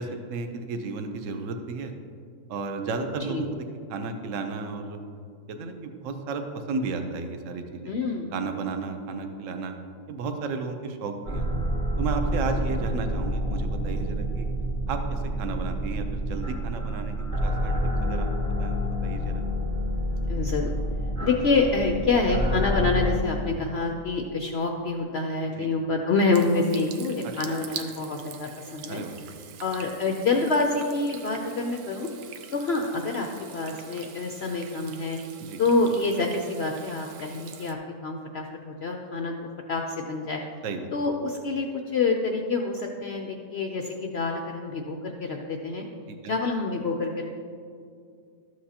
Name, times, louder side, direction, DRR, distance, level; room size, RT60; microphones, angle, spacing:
voice 1, 0.0-1.9 2.5-3.6 3.9-5.0 5.5-7.9 8.3-9.7 10.1-11.5 12.0-14.5 14.9-17.2 17.4-18.3 18.6-19.4 25.5-25.7 27.5-27.6 28.9-29.2 35.4-35.6 40.6-40.9 46.1-46.3, right 4 dB, 55° right, 6 dB, 1.0 m, -33 dB
voice 2, 7.9-8.3 20.3-20.7 21.2-29.0 29.6-32.1 32.5-33.3 33.5-35.2 35.6-39.3 39.7-40.4 40.9-45.8 46.3-47.3, left 3 dB, 75° left, 2 dB, 0.5 m, -27 dB
sound 1, 11.3-23.2, equal, 20° right, 1.4 m, -28 dB
Water tap faucet / Sink (filling or washing), 26.3-37.7, right 8 dB, 90° right, 1.3 m, -44 dB
13.0 x 7.7 x 2.8 m, 2.3 s
omnidirectional pair, 1.8 m